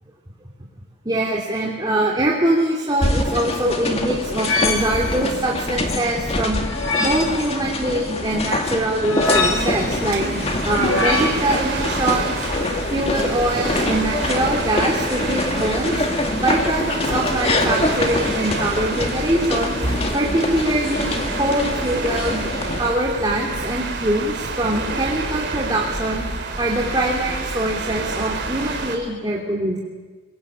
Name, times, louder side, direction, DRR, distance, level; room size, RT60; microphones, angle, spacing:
voice 1, 1.0-6.6 7.0-10.3 10.6-12.3 12.9-16.0 16.4-19.8 20.1-22.4 22.8-26.2 26.6-29.8, right 1 dB, 20° right, -2 dB, 3.1 m, -23 dB
sound 1, 3.0-22.9, left 2 dB, 30° left, 2.1 m, -25 dB
sound 2, 4.4-5.2 6.6-7.4 9.0-9.9 10.7-11.2, left 3 dB, 70° left, 5.3 m, -23 dB
sound 3, 9.3-29.0, right 3 dB, 50° right, 3.5 m, -28 dB
29.5 x 21.5 x 8.8 m, 1.4 s
head